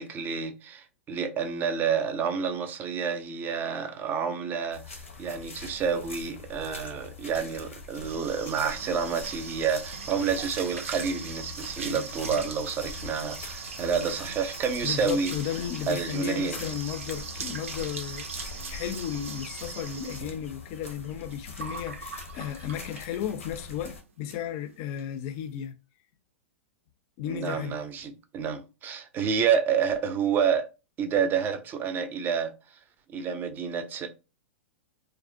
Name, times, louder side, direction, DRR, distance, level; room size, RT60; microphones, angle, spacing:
voice 1, 0.0-15.3 15.9-16.7 27.3-30.7 31.0-32.5 33.1-34.1, right 6 dB, 25° right, 0.4 m, -29 dB
sound 1, 4.7-24.0, left 4 dB, 90° left, 0.6 m, -44 dB
sound 2, 7.6-23.3 23.7-24.0 24.3-24.4 24.7-25.0, right 5 dB, 80° right, 0.4 m, -40 dB
voice 2, 14.8-25.8 27.2-27.8, left 10 dB, 45° left, 0.4 m, -34 dB
2.4 x 2.0 x 2.4 m
hypercardioid pair, 110°, 7 cm